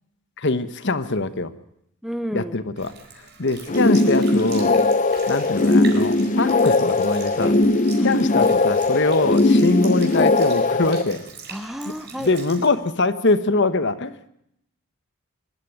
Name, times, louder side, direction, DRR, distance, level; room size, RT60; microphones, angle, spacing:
voice 1, 0.4-1.5 2.3-4.8 5.3-7.6 8.0-11.3 12.2-14.2, left 3 dB, 50° left, 12 dB, 1.1 m, -23 dB
voice 2, 2.0-2.5 8.0-8.1 11.5-12.3, equal, ahead, 10 dB, 0.9 m, -31 dB
Sink (filling or washing) / Liquid, 2.8-12.7, right 5 dB, 50° right, 4.5 m, -42 dB
sound 1, 3.7-11.0, left 2 dB, 35° left, 0.8 m, -19 dB
24.5 x 12.5 x 9.4 m, 0.75 s
head